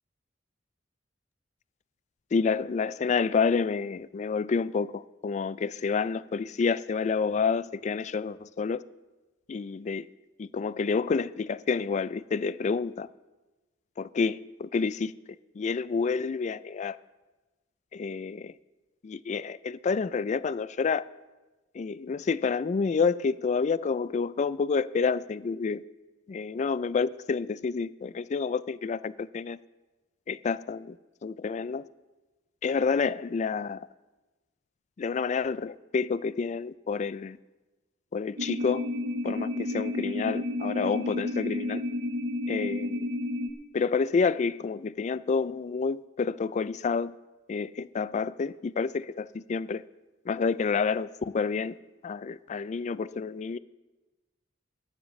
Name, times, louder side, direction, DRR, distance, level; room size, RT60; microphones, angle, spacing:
voice 1, 2.3-8.8 9.5-10.1 10.4-13.1 14.0-15.1 15.6-17.0 17.9-18.5 19.0-21.0 21.7-25.8 26.3-29.6 30.3-31.0 31.2-31.9 32.6-33.8 35.0-37.4 38.1-38.9 39.2-41.8 42.5-43.0 43.7-47.1 47.5-49.8 50.3-51.7 52.0-53.6, left 5 dB, 40° left, 0.3 m, -29 dB
sound 1, 38.4-43.5, left 1 dB, 75° right, 1.0 m, -31 dB
22.0 x 9.8 x 3.2 m
head